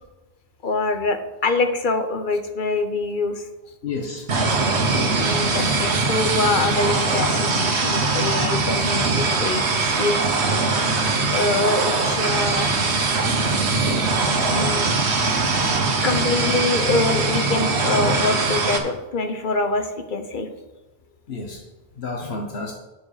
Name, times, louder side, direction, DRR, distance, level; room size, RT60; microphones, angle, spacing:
voice 1, 0.6-3.5 5.1-10.2 11.3-12.8 14.5-15.0 16.0-20.5, left 3 dB, 50° left, 7 dB, 1.1 m, -24 dB
voice 2, 3.8-4.5 21.3-21.6 22.0-22.7, left 3 dB, 75° left, 1 dB, 1.3 m, -31 dB
sound 1, 4.3-18.8, right 3 dB, 90° right, 1.4 m, -21 dB
9.3 x 7.2 x 4.9 m, 1.1 s
omnidirectional pair, 1.1 m